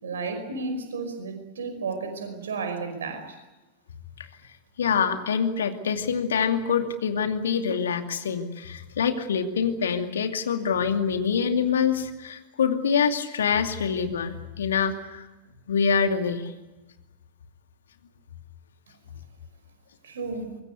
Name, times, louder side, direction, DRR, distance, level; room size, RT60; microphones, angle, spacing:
voice 1, 0.0-3.4 20.0-20.6, right 4 dB, 65° right, 8 dB, 5.3 m, -33 dB
voice 2, 4.8-15.3 15.7-16.5, left 6 dB, 65° left, 6 dB, 2.5 m, -25 dB
25.0 x 22.5 x 8.3 m, 1.1 s
figure-of-eight pair, 90°, 0 cm